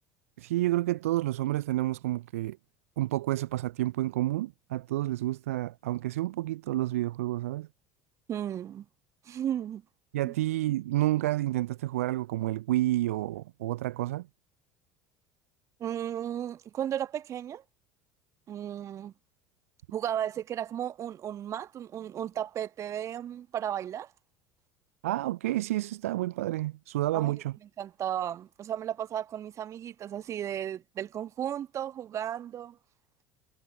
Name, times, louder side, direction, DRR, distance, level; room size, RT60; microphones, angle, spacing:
voice 1, 0.4-2.6 3.0-7.7 10.1-14.3 25.0-27.6, right 16 dB, 70° right, 0.4 m, -29 dB
voice 2, 8.3-8.8 9.3-9.8 10.2-10.3 15.8-17.6 18.5-19.1 19.9-24.1 27.1-27.3 27.8-32.8, right 10 dB, 40° right, 1.4 m, -34 dB
figure-of-eight pair, 65°, 8 cm